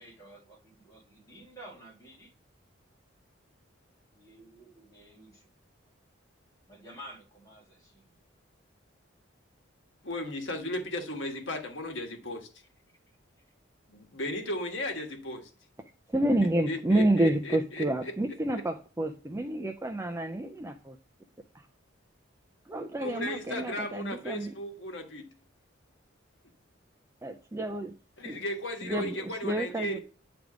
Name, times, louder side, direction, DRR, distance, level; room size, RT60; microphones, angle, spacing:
voice 1, 0.0-2.3 4.1-5.5 6.7-8.2 13.1-13.5, equal, 15° left, 2.2 m, -51 dB
voice 2, 10.0-12.5 13.9-15.5 16.7-18.1 23.0-25.3 28.2-30.0, left 1 dB, 65° left, 1.5 m, -35 dB
voice 3, 16.1-21.0 22.7-24.5 27.2-27.9 28.2-28.4 28.8-29.1 29.4-30.0, right 1 dB, 15° right, 0.4 m, -29 dB
9.3 x 3.4 x 5.0 m
head